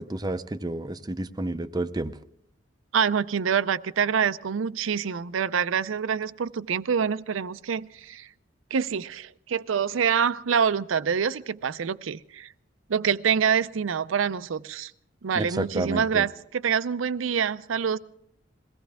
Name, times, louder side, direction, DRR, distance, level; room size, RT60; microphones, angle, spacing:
voice 1, 0.0-2.1 15.4-16.2, right 2 dB, 20° right, 11 dB, 0.5 m, -30 dB
voice 2, 2.9-8.3 8.7-12.5 12.9-14.9 15.2-18.0, right 7 dB, 85° right, 15 dB, 0.5 m, -26 dB
22.0 x 17.0 x 3.5 m, 0.74 s
head